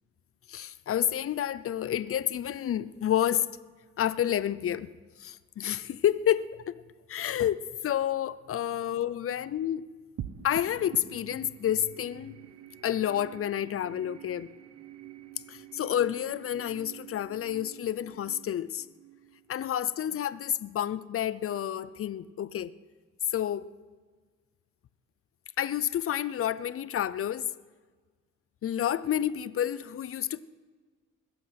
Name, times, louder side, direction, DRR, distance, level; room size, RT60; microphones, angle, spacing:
voice 1, 0.5-3.5 4.0-4.9 5.2-6.7 7.1-9.8 10.4-12.4 12.8-14.5 15.5-18.9 19.5-22.7 23.3-23.7 25.6-27.5 28.6-30.4, left 10 dB, 50° left, 0.6 m, -29 dB
sound 1, 10.2-20.8, right 10 dB, 60° right, 0.9 m, -47 dB
21.5 x 7.9 x 5.9 m
cardioid pair, 90°, 30 cm